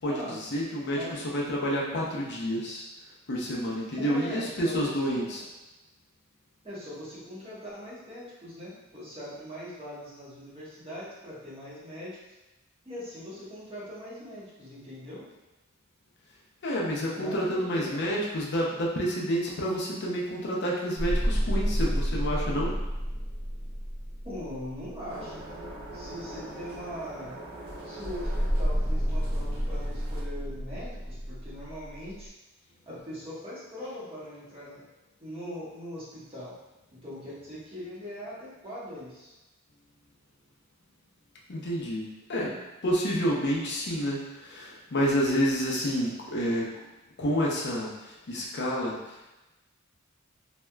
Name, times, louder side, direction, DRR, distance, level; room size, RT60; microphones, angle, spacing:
voice 1, 0.0-2.8 3.3-5.4 16.6-22.7 41.5-42.5 42.8-46.7 47.2-49.3, equal, 55° left, -3 dB, 0.6 m, -29 dB
voice 2, 4.0-5.4 6.6-12.2 12.8-15.2 17.1-18.1 24.2-25.6 25.9-27.4 27.8-32.3 32.9-34.8 35.2-36.5 37.0-39.3, equal, 30° right, -9 dB, 1.1 m, -41 dB
sound 1, 21.0-25.4 28.1-32.2, equal, 5° left, 0.6 m, -30 dB
sound 2, 25.1-30.2, right 1 dB, 50° right, 0.6 m, -43 dB
3.2 x 2.8 x 2.2 m, 1.0 s
head